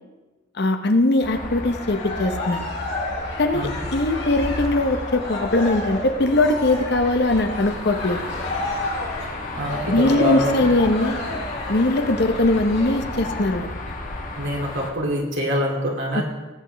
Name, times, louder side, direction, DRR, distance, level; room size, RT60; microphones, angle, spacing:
voice 1, 0.6-2.6 3.4-8.2 9.9-11.2 11.7-13.7 16.1-16.2, left 2 dB, 60° left, 7 dB, 0.8 m, -21 dB
sound 1, 1.2-14.9, left 2 dB, 45° left, 1.4 m, -33 dB
Cheering, 1.6-13.3, left 1 dB, 75° left, 3.9 m, -32 dB
voice 2, 9.6-10.6 14.3-16.2, left 1 dB, 70° right, -2 dB, 2.5 m, -25 dB
18.0 x 8.5 x 3.4 m, 1.2 s
head